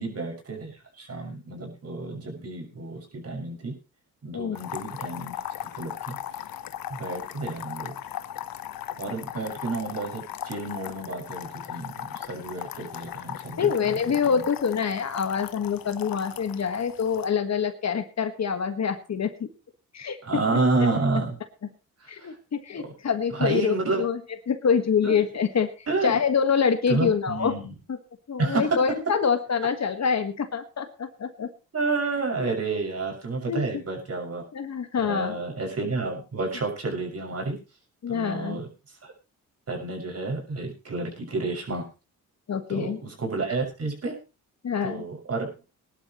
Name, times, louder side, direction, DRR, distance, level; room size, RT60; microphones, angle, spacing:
voice 1, 0.0-3.8 4.2-5.3 5.7-6.2 6.9-7.9 9.0-14.4 20.2-21.4 22.0-22.3 23.3-24.1 25.0-25.2 25.9-26.1 26.9-27.7 28.4-28.6 31.7-34.4 35.0-37.6 38.1-38.7 39.0-39.1 39.7-41.8 42.7-44.1 44.8-45.5, right 3 dB, 45° right, 1 dB, 6.4 m, -30 dB
sound 1, 4.6-17.3, left 11 dB, 70° left, 1.1 m, -38 dB
voice 2, 13.6-19.5 19.9-20.4 22.1-24.2 24.5-25.7 26.0-27.5 27.9-28.0 28.3-31.5 32.4-32.5 33.5-33.8 34.5-35.4 38.0-38.6 42.5-43.0 44.6-45.0, left 6 dB, 50° left, 8 dB, 1.7 m, -26 dB
20.5 x 11.5 x 3.1 m, 0.31 s
cardioid pair, 75°, 35 cm